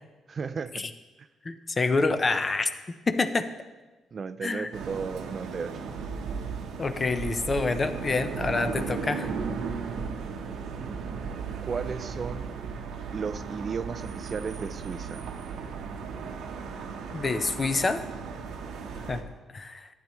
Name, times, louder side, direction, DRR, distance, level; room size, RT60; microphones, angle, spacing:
voice 1, 0.3-0.8 1.2-1.3 4.1-5.9 11.6-12.5 13.1-15.3, right 5 dB, 40° right, 13 dB, 0.3 m, -34 dB
voice 2, 1.4-2.7 3.1-3.5 4.4-4.7 6.8-9.3 17.1-18.0 19.0-19.3 19.5-19.9, left 3 dB, 30° left, 9 dB, 0.6 m, -27 dB
sound 1, 4.7-19.2, right 5 dB, 85° right, 0.9 m, -36 dB
12.0 x 8.6 x 3.1 m, 1.2 s
cardioid pair, 90°, 0 cm